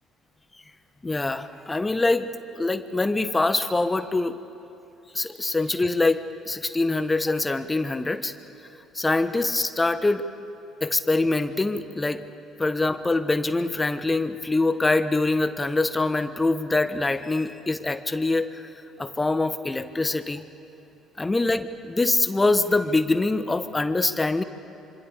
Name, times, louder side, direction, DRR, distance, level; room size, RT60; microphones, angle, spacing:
voice 1, 1.0-2.3 2.6-4.4 5.1-8.3 8.9-10.3 10.8-12.2 12.6-18.7 19.0-20.4 21.2-24.4, left 2 dB, 20° left, 11 dB, 1.4 m, -24 dB
26.0 x 25.0 x 7.0 m, 2.8 s
figure-of-eight pair, 50°, 0 cm